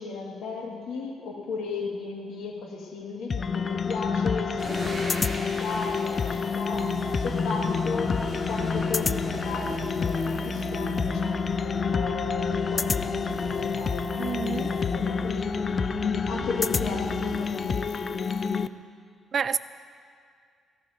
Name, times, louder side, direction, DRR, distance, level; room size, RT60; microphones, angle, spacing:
voice 1, 0.0-6.9 7.2-15.5 16.0-18.3, left 4 dB, 75° left, -1 dB, 2.3 m, -35 dB
sound 1, 3.3-18.7, left 5 dB, 35° left, 0.4 m, -28 dB
sound 2, 4.6-10.8, right 1 dB, 15° right, 3.0 m, -42 dB
sound 3, 6.7-17.4, right 8 dB, 75° right, 0.8 m, -41 dB
voice 2, 14.2-14.7 19.3-19.6, right 6 dB, 45° right, 12 dB, 0.3 m, -28 dB
17.0 x 14.0 x 4.4 m, 2.2 s
cardioid pair, 115°, 0 cm